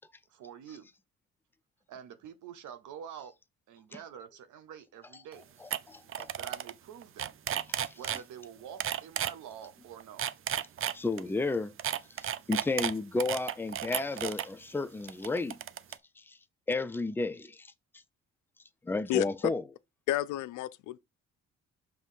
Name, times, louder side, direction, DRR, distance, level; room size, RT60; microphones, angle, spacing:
voice 1, 0.3-0.9 1.9-3.3 3.7-5.5 6.4-7.4 7.9-10.2, right 8 dB, 80° right, 0.8 m, -47 dB
sound 1, 5.3-5.4 5.7-5.8 6.1-6.7 7.0-8.2 8.8-9.3 10.0-11.2 11.8-14.5 15.1-15.9, right 10 dB, 45° right, 0.5 m, -33 dB
voice 2, 5.6-6.3 7.7-7.9 10.8-11.7 12.2-15.6 16.2-16.4 16.7-17.7 18.8-19.6, left 3 dB, 5° left, 0.5 m, -32 dB
voice 3, 19.1-19.5 20.1-21.0, left 15 dB, 80° left, 0.5 m, -31 dB
5.6 x 3.0 x 5.6 m
cardioid pair, 90°, 30 cm